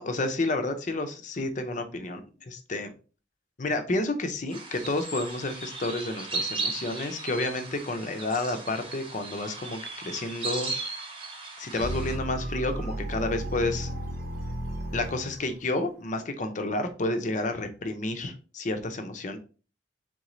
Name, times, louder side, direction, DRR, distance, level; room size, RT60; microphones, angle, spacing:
voice 1, 0.0-2.9 3.6-10.7 11.6-13.9 14.9-19.4, left 2 dB, 40° left, 8 dB, 0.5 m, -30 dB
sound 1, 4.5-12.2, right 3 dB, 25° right, 0.9 m, -36 dB
sound 2, 11.8-15.6, equal, 55° right, 0.8 m, -34 dB
3.8 x 3.6 x 3.1 m, 0.36 s
head